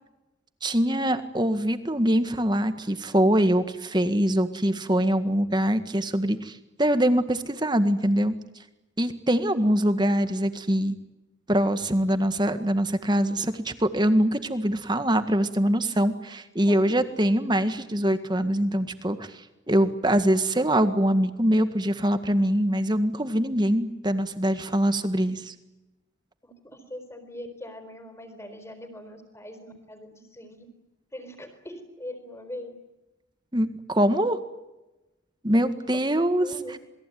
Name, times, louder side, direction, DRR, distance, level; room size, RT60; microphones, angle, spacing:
voice 1, 0.6-8.4 9.0-10.9 11.5-19.3 19.7-25.5 33.5-34.4 35.4-36.5, equal, 20° right, 9 dB, 1.8 m, -23 dB
voice 2, 9.4-9.8 16.7-16.9 26.4-30.7 31.1-32.7 36.2-36.7, equal, 15° left, 7 dB, 4.5 m, -41 dB
27.5 x 21.5 x 9.4 m, 1.0 s
head